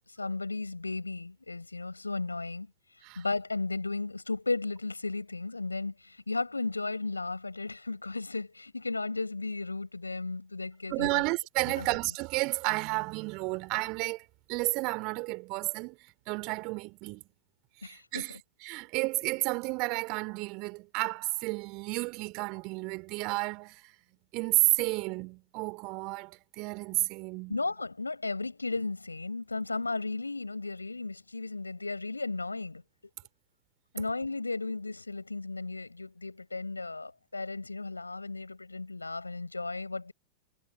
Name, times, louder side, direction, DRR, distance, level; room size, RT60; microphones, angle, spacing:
voice 1, 0.2-2.7 3.2-11.2 11.8-11.9 17.8-18.4 27.5-32.8 33.9-40.1, left 3 dB, 85° left, 7.4 m, -35 dB
voice 2, 10.9-14.2 14.5-16.0 16.3-17.2 17.8-23.9 24.3-27.6, right 27 dB, 45° right, 5.0 m, -31 dB
figure-of-eight pair, 90°, 0 cm